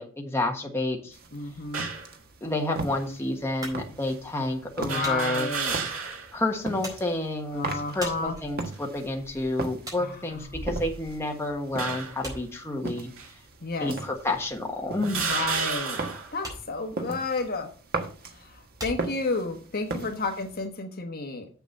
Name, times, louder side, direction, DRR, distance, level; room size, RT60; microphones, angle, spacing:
voice 1, 0.0-1.2 2.4-5.5 6.3-13.1 13.8-15.3 20.1-20.2, left 2 dB, 10° left, 1 dB, 1.4 m, -30 dB
sound 1, 1.1-20.7, right 3 dB, 50° right, 1.3 m, -39 dB
voice 2, 1.3-1.9 4.8-6.0 7.5-8.3 10.0-10.2 10.5-10.6 13.6-13.9 15.1-16.0 16.3-17.7 18.4-21.5, left 3 dB, 45° left, 4 dB, 1.3 m, -32 dB
sound 2, 1.7-2.1 3.0-3.1 4.9-6.4 6.8-6.9 8.0-8.5 9.1-9.4 10.4-11.2 11.8-12.3 13.2-13.3 14.2-14.3 15.0-16.3, right 5 dB, 70° right, 2.1 m, -32 dB
sound 3, 3.6-11.5 11.7-19.8, right 1 dB, 20° right, 4.3 m, -43 dB
7.5 x 7.0 x 5.3 m, 0.40 s
head